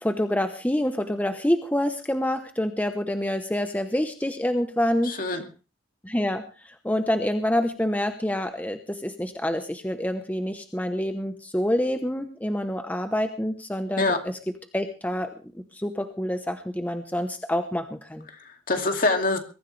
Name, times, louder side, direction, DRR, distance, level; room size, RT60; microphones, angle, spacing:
voice 1, 0.0-5.1 6.0-14.1 14.7-15.3 15.7-18.2, left 1 dB, 10° left, 7 dB, 0.9 m, -27 dB
voice 2, 5.0-5.5 14.0-14.2 18.3-19.4, left 3 dB, 50° left, 5 dB, 2.5 m, -25 dB
22.5 x 14.0 x 3.3 m, 0.33 s
head